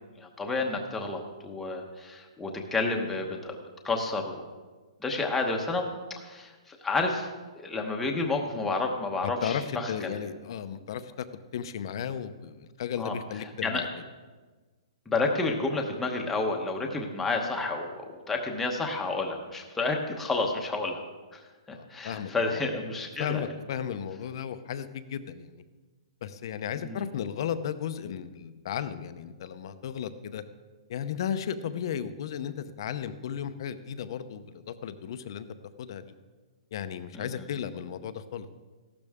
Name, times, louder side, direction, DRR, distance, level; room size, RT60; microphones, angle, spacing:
voice 1, 0.2-3.6 3.8-4.4 5.0-7.3 7.6-10.2 13.0-13.2 13.6-13.8 15.1-21.0 21.3-23.4 26.7-27.1 37.1-37.5, left 3 dB, 5° left, 1 dB, 1.0 m, -30 dB
voice 2, 9.2-11.3 11.5-13.9 21.7-22.6 23.2-25.6 26.2-30.4 30.9-35.5 35.8-36.1 36.7-38.5, left 8 dB, 45° left, 11 dB, 0.7 m, -35 dB
15.0 x 12.0 x 3.6 m, 1.3 s
hypercardioid pair, 170°, 3 cm